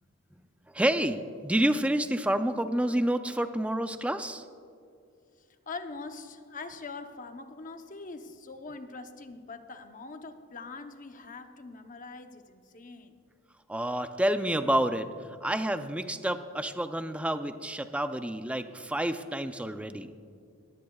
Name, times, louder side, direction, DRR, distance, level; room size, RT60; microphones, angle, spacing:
voice 1, 0.7-4.4 13.7-20.1, right 1 dB, 5° right, 9 dB, 0.4 m, -29 dB
voice 2, 5.4-13.2, left 3 dB, 40° left, 7 dB, 0.8 m, -43 dB
20.0 x 15.0 x 2.3 m, 2.4 s
head